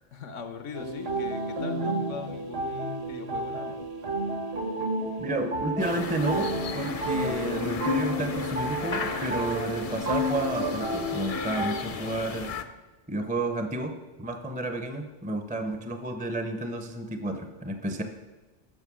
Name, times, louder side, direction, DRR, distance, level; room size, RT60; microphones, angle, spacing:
voice 1, 0.1-3.8, left 5 dB, 85° left, 9 dB, 1.2 m, -40 dB
sound 1, 0.7-11.8, right 1 dB, 55° right, 1.3 m, -31 dB
voice 2, 5.2-12.5 13.1-18.0, right 2 dB, 10° right, 6 dB, 0.5 m, -31 dB
sound 2, 5.8-12.6, left 5 dB, 45° left, 0.5 m, -36 dB
9.0 x 6.4 x 6.2 m, 1.2 s
omnidirectional pair, 1.2 m